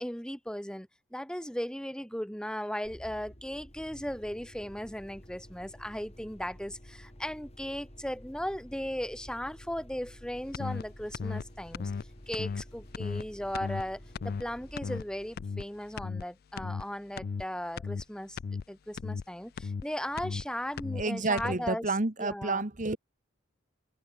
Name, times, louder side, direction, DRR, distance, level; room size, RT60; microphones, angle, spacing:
voice 1, 0.0-11.9 12.3-18.4 18.7-21.9 22.2-22.6, equal, 5° left, 2.2 m, -37 dB
sound 1, 2.8-16.3, equal, 30° left, 5.6 m, -51 dB
sound 2, 10.5-10.8 11.1-11.4 11.7-12.0 12.3-12.6 12.9-13.2 13.5-13.8 14.1-14.4 14.8-15.0 15.4-15.6 16.0-16.2 16.6-16.8 17.2-17.4 17.8-18.0 18.4-18.6 19.0-19.2 19.6-19.8 20.2-20.4 20.8-21.0 21.4-21.6, left 5 dB, 45° left, 0.3 m, -35 dB
voice 2, 20.9-23.0, right 3 dB, 40° right, 1.4 m, -30 dB
head